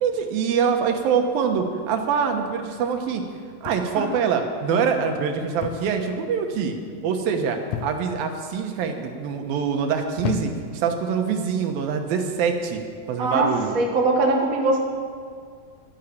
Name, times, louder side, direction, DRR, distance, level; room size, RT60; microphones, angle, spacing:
voice 1, 0.0-3.2 3.6-6.8 7.0-12.8 13.1-13.8, right 6 dB, 85° right, 5 dB, 3.0 m, -24 dB
sound 1, 3.6-4.2 5.6-6.0 6.3-6.7 7.7-8.3 9.0-9.4 10.2-10.8 11.8-12.0, left 9 dB, 75° left, 1.6 m, -33 dB
voice 2, 13.2-14.8, right 2 dB, 35° right, 0 dB, 1.5 m, -21 dB
11.5 x 11.0 x 8.5 m, 2.1 s
omnidirectional pair, 4.1 m